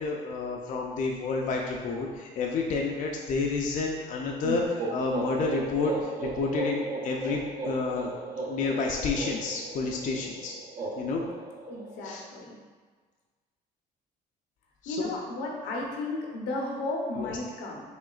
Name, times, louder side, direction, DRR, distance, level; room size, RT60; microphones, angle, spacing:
voice 1, 0.0-7.4 7.7-8.1 8.5-10.5 11.0-11.3 12.0-12.2 14.8-15.1 17.2-17.3, left 4 dB, 50° left, -1 dB, 0.5 m, -30 dB
sound 1, 4.4-12.1, right 3 dB, 50° right, 0.8 m, -36 dB
voice 2, 11.7-12.6 14.9-17.8, left 2 dB, 85° left, -1 dB, 0.8 m, -34 dB
4.9 x 3.1 x 2.4 m, 1.5 s
cardioid pair, 110°, 17 cm